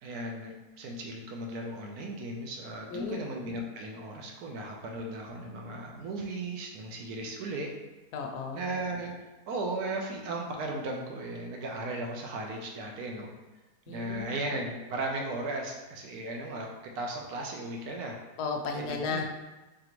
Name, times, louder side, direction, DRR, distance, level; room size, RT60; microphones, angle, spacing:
voice 1, 0.0-7.7 8.5-9.1 9.5-13.3 13.9-16.7 16.9-18.2 18.7-19.3, right 2 dB, 75° right, 0 dB, 1.1 m, -36 dB
voice 2, 8.1-8.6 13.9-14.3 18.4-19.3, left 4 dB, 80° left, 3 dB, 1.1 m, -34 dB
3.8 x 3.4 x 2.9 m, 1.1 s
omnidirectional pair, 1.7 m